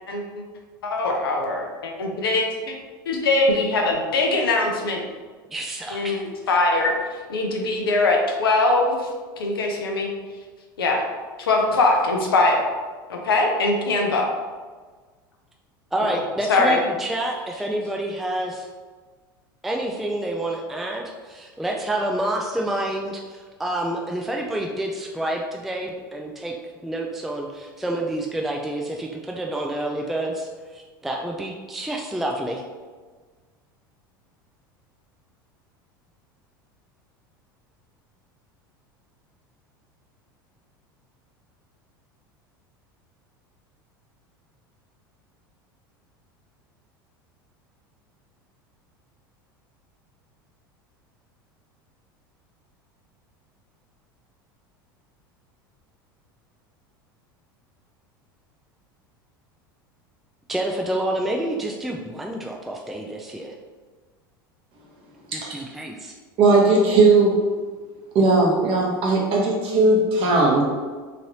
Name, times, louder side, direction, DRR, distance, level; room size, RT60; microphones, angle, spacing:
voice 1, 0.1-0.4 0.8-2.7 3.1-5.0 5.9-6.2 6.5-6.9 7.3-9.0 9.4-10.1 10.8-11.0 11.4-12.6 13.1-14.2 16.0-16.2 16.5-16.8, left 2 dB, 85° left, 1 dB, 0.6 m, -21 dB
voice 2, 5.5-6.2 15.9-18.7 19.6-26.5 26.8-32.6 60.5-63.5 65.3-66.1, right 1 dB, ahead, 0 dB, 0.3 m, -28 dB
voice 3, 66.4-67.3 68.1-70.6, right 3 dB, 50° right, -2 dB, 0.9 m, -17 dB
3.1 x 2.6 x 2.8 m, 1.4 s
hypercardioid pair, 85°, 12 cm